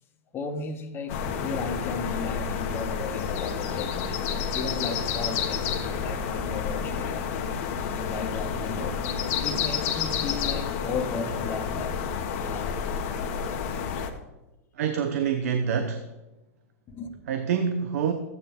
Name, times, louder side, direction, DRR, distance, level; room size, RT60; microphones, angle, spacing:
voice 1, 0.3-7.3 7.9-12.0 12.4-12.8 16.9-17.2, left 4 dB, 30° left, 1.5 m, -35 dB
sound 1, 1.1-14.1, left 6 dB, 55° left, 1.4 m, -30 dB
voice 2, 14.8-16.0 17.3-18.1, right 7 dB, 70° right, 1.0 m, -26 dB
14.5 x 9.2 x 3.7 m
hypercardioid pair, 115°, 8 cm